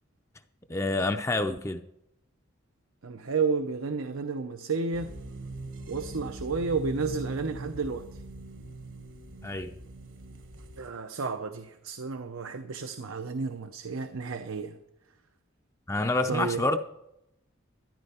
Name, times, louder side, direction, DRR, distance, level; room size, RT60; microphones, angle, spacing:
voice 1, 0.7-1.8 9.4-9.7 15.9-16.8, left 2 dB, 15° left, 0.5 m, -27 dB
voice 2, 3.0-5.1 5.9-8.2 10.8-14.8 16.3-16.6, right 4 dB, 85° right, 0.7 m, -31 dB
sound 1, 4.9-10.9, right 2 dB, 65° right, 1.3 m, -41 dB
13.5 x 11.0 x 4.3 m
head